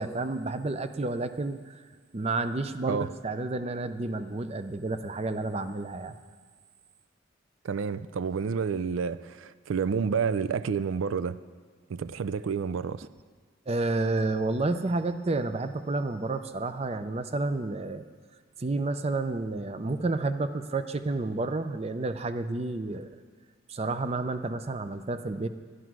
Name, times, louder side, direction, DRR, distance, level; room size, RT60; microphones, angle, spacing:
voice 1, 0.0-1.8 2.1-6.2 13.7-18.0 18.6-23.1 23.7-25.5, right 2 dB, 30° right, 10 dB, 0.5 m, -30 dB
voice 2, 7.6-11.4 11.9-13.1, right 6 dB, 90° right, 14 dB, 0.4 m, -29 dB
11.5 x 11.5 x 6.1 m, 1.5 s
head